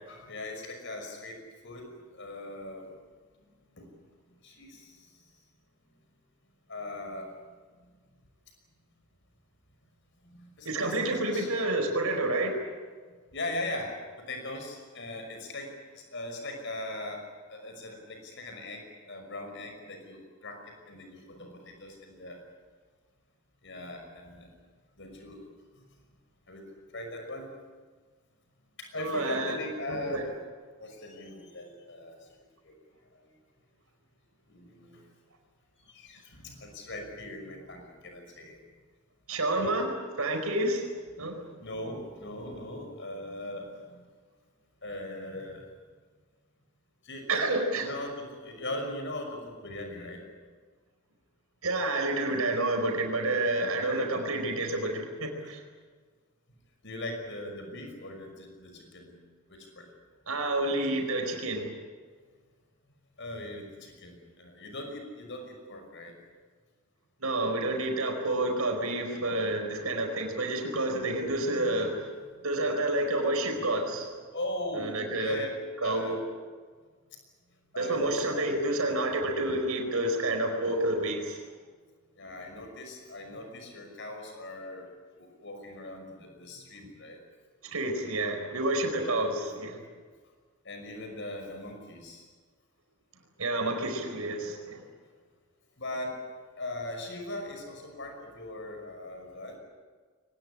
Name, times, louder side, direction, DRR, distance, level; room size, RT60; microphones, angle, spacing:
voice 1, 0.0-3.0 3.7-3.9 4.4-5.2 6.7-7.3 7.7-7.9 10.2-11.5 11.8-11.9 13.3-13.9 14.3-20.6 20.9-22.4 23.6-24.5 25.0-25.4 26.5-26.7 26.9-27.5 28.8-30.2 30.8-32.2 32.6-32.7 33.1-33.3 34.5-35.0 35.9-38.6 39.4-39.7 41.2-44.0 44.8-45.7 47.0-47.4 47.7-50.2 55.4-55.5 56.8-59.2 59.5-59.9 63.2-66.1 71.0-72.1 72.4-72.5 74.3-75.5 75.8-76.2 77.7-78.6 79.1-79.3 82.2-84.9 85.2-87.2 90.6-92.3 95.8-96.2 96.6-99.6, left 1 dB, 55° left, 4 dB, 5.7 m, -40 dB
voice 2, 10.6-12.6 28.9-29.6 29.9-30.3 39.3-39.9 40.2-40.9 41.2-41.4 47.3-47.9 51.6-55.6 60.3-61.7 67.2-72.1 72.4-74.1 74.7-75.4 75.8-76.2 77.8-81.4 87.7-89.8 93.4-94.8, right 2 dB, 75° right, 3 dB, 4.8 m, -29 dB
23.0 x 19.5 x 9.9 m, 1.5 s
head